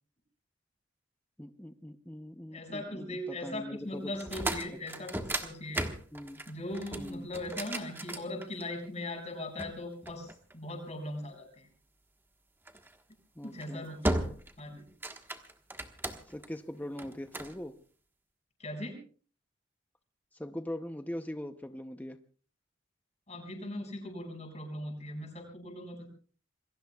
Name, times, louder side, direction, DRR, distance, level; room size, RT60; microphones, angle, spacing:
voice 1, 1.4-4.1 6.1-6.4 7.0-7.3 13.4-13.9 16.3-17.8 20.3-22.2, left 1 dB, 10° left, 7 dB, 0.7 m, -41 dB
voice 2, 2.5-5.9 6.5-11.7 13.4-14.2 14.6-14.8 18.6-19.0 23.3-26.1, left 1 dB, 35° left, 2 dB, 6.0 m, -39 dB
sound 1, 4.1-8.9 9.6-10.9 12.7-12.9 13.4-13.7 14.0-14.6 14.9-16.5 17.0-17.6, right 1 dB, 10° right, 1.3 m, -36 dB
27.5 x 22.0 x 2.3 m, 0.41 s
head